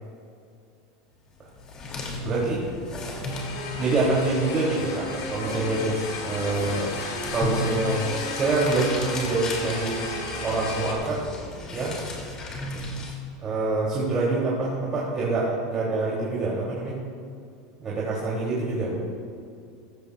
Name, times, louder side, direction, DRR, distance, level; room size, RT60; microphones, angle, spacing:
sound 1, 1.4-13.1, left 2 dB, 35° left, 2.8 m, -36 dB
voice 1, 2.2-2.6 3.8-6.9 7.3-10.0 10.4-11.2 11.7-12.0 13.4-17.0 17.8-19.0, right 2 dB, 30° right, -6 dB, 3.2 m, -26 dB
sound 2, 2.3-12.3, equal, 5° left, 2.9 m, -41 dB
sound 3, 3.3-10.9, left 4 dB, 60° left, 2.5 m, -35 dB
15.5 x 14.5 x 2.5 m, 2.4 s
hypercardioid pair, 105°, 2 cm